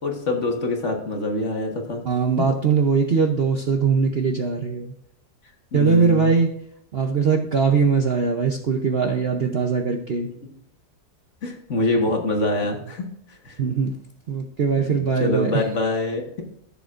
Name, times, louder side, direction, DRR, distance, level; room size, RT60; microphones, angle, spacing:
voice 1, 0.0-2.0 5.7-6.3 10.4-10.5 11.4-13.6 14.9-16.4, left 2 dB, 45° left, 2 dB, 1.7 m, -25 dB
voice 2, 2.0-4.9 5.7-6.5 6.9-10.3 13.6-13.9 14.3-15.6, right 5 dB, 50° right, 3 dB, 0.8 m, -21 dB
15.0 x 6.9 x 2.5 m, 0.73 s
omnidirectional pair, 1.8 m